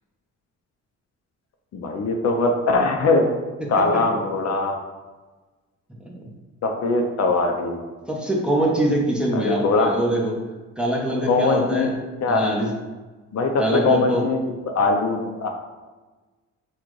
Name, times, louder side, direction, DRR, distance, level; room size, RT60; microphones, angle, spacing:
voice 1, 1.7-3.3 3.7-4.7 6.6-7.8 9.3-9.9 11.3-11.9 12.2-12.5 13.3-14.4 14.7-15.5, left 3 dB, 60° left, 3 dB, 0.7 m, -21 dB
voice 2, 3.6-4.0 6.0-6.2 8.1-10.3 10.8-11.9 12.3-12.7 13.6-14.2, right 1 dB, 5° right, -3 dB, 1.0 m, -23 dB
6.0 x 2.4 x 3.2 m, 1.3 s
cardioid pair, 90°, 30 cm